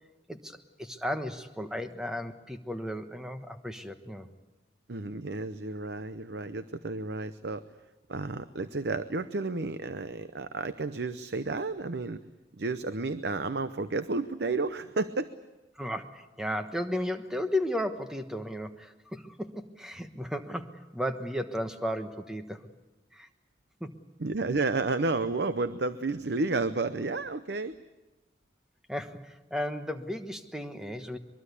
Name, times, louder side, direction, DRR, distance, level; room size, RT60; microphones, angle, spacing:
voice 1, 0.3-4.3 15.7-22.7 23.1-23.3 23.8-23.9 28.9-31.2, left 1 dB, 5° right, 7 dB, 1.2 m, -34 dB
voice 2, 4.9-7.6 8.1-12.2 12.6-15.3 24.2-27.8, right 3 dB, 75° right, 12 dB, 0.7 m, -31 dB
23.0 x 22.5 x 8.3 m, 1.1 s
head